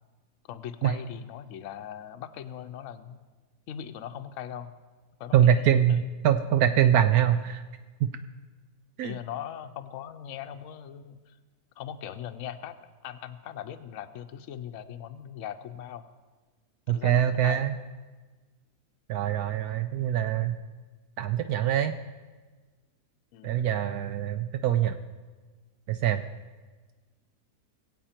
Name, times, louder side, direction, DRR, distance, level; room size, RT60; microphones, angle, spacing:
voice 1, 0.5-3.2 3.7-4.7 5.2-6.0 9.0-11.4 11.8-12.8 13.0-16.1 16.9-17.7 23.3-23.5, left 9 dB, 60° left, 8 dB, 0.9 m, -40 dB
voice 2, 5.3-7.6 8.0-8.1 9.0-9.2 16.9-17.8 19.1-20.5 21.2-21.9 23.4-25.0 25.9-26.2, right 10 dB, 75° right, 8 dB, 1.0 m, -24 dB
22.5 x 8.2 x 4.4 m, 1.4 s
omnidirectional pair, 1.7 m